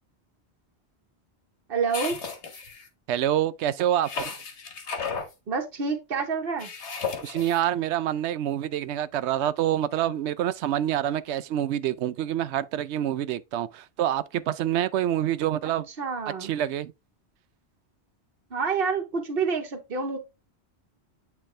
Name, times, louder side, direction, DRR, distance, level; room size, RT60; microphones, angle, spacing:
voice 1, 1.7-2.2 5.5-6.7 15.9-16.5 18.5-20.2, right 5 dB, 60° right, 1.3 m, -28 dB
sound 1, 1.9-2.9 4.0-5.3 6.6-7.6, left 5 dB, 85° left, 1.5 m, -34 dB
voice 2, 3.1-4.3 7.2-15.9 16.4-16.9, right 11 dB, 80° right, 0.9 m, -27 dB
8.8 x 3.5 x 3.2 m
omnidirectional pair, 1.1 m